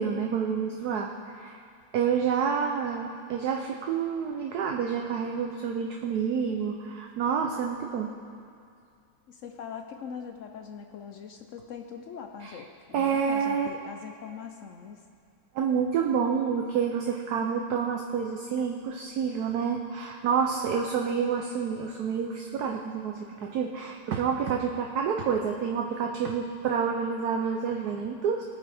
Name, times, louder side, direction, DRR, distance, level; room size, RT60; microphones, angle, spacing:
voice 1, 0.0-1.6 1.9-8.2 12.4-12.6 12.9-13.7 15.5-28.4, right 6 dB, 65° right, 2 dB, 1.1 m, -28 dB
voice 2, 9.3-15.0, left 7 dB, 70° left, 5 dB, 0.7 m, -42 dB
19.5 x 9.2 x 3.5 m, 2.3 s
omnidirectional pair, 2.0 m